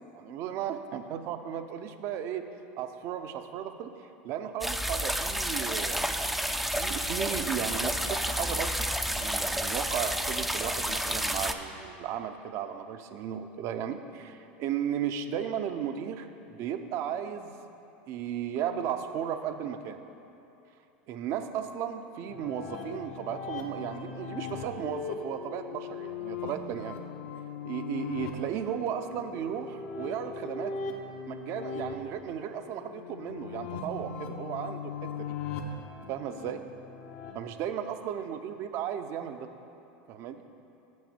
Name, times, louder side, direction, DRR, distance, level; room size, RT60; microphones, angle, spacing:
voice 1, 0.1-2.5 2.8-3.9 4.2-6.1 6.7-8.9 9.1-17.5 18.1-20.0 21.1-26.9 27.7-30.7 31.3-35.1 36.1-36.6 37.3-39.5 40.1-40.4, right 9 dB, 55° right, 8 dB, 0.6 m, -35 dB
sound 1, 4.6-11.5, equal, ahead, 0.4 m, -30 dB
sound 2, 22.3-37.3, left 5 dB, 65° left, 0.9 m, -39 dB
6.9 x 6.3 x 6.8 m, 2.8 s
supercardioid pair, 105°, 6 cm